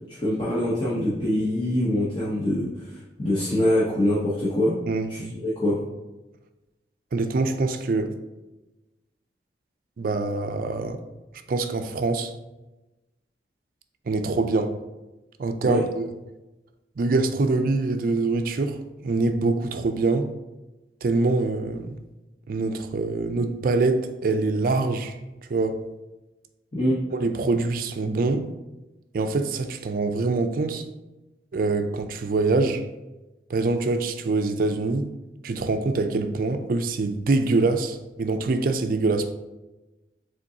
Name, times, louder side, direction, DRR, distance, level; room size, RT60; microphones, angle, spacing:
voice 1, 0.1-4.8 5.1-5.8 15.6-15.8 26.7-27.0, left 1 dB, 25° left, 0.9 m, -24 dB
voice 2, 7.1-8.1 10.0-11.0 11.5-12.3 14.1-14.7 15.4-16.1 17.0-20.3 21.0-22.0 22.5-25.1 25.5-25.8 27.2-28.5 29.1-30.8 31.5-32.8 33.5-35.1 35.4-39.3, right 3 dB, 50° right, 0.4 m, -24 dB
5.1 x 3.8 x 2.7 m
head